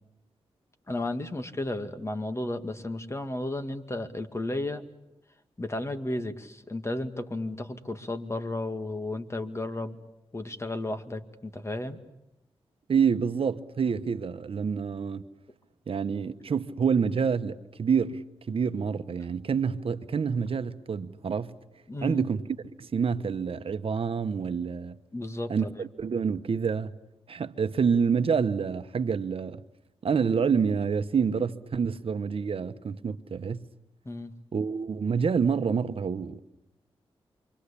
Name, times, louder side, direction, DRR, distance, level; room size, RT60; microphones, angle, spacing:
voice 1, 0.9-4.8 5.6-10.0 10.3-12.0 21.9-22.2 25.1-25.8 34.1-34.3, left 2 dB, 25° left, 2.2 m, -33 dB
voice 2, 12.9-15.3 15.9-21.5 22.0-25.0 25.5-26.9 27.3-29.6 30.0-33.7 34.5-36.4, right 6 dB, 65° right, 1.1 m, -27 dB
29.0 x 24.5 x 8.5 m
cardioid pair, 80°, 10 cm